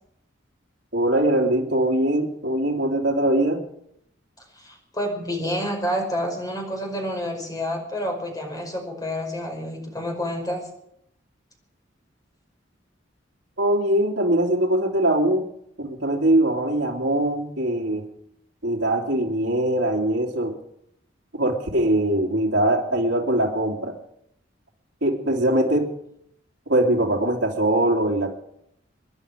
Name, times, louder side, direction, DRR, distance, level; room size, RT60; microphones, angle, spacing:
voice 1, 0.9-3.6 13.6-15.5 15.8-18.0 18.6-20.5 21.4-24.0 25.0-25.9 26.7-28.3, right 1 dB, 70° right, -2 dB, 2.8 m, -22 dB
voice 2, 4.6-10.6, equal, 20° left, 2 dB, 5.3 m, -29 dB
26.0 x 11.0 x 5.0 m, 0.73 s
head